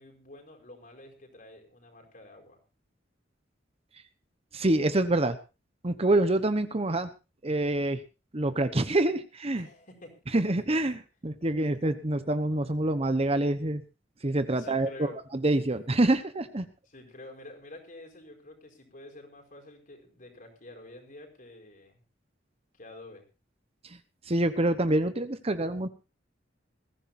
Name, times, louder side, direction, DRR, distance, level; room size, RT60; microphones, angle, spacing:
voice 1, 0.0-2.6 9.5-10.2 14.6-15.2 16.9-22.0 22.7-23.2, left 2 dB, 45° left, 3 dB, 4.8 m, -49 dB
voice 2, 4.5-5.4 5.8-7.1 7.4-8.0 8.3-9.7 10.3-13.8 14.2-16.7 23.8-24.0 24.3-25.9, right 1 dB, 35° right, 11 dB, 1.0 m, -26 dB
21.0 x 15.0 x 2.7 m, 0.30 s
head